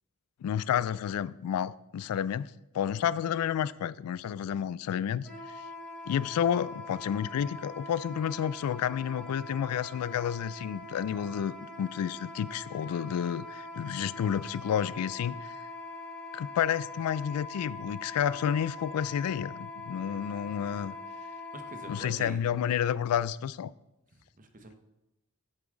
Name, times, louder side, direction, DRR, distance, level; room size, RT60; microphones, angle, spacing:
voice 1, 0.4-2.5 2.7-5.3 6.1-15.5 16.3-20.9 21.9-23.7, left 9 dB, 90° left, 0.3 m, -30 dB
Wind instrument woodwind instrument, 5.2-22.0, left 2 dB, 5° left, 3.1 m, -43 dB
voice 2, 21.5-22.4 24.1-24.8, right 2 dB, 40° right, 0.9 m, -45 dB
8.2 x 7.0 x 3.8 m
head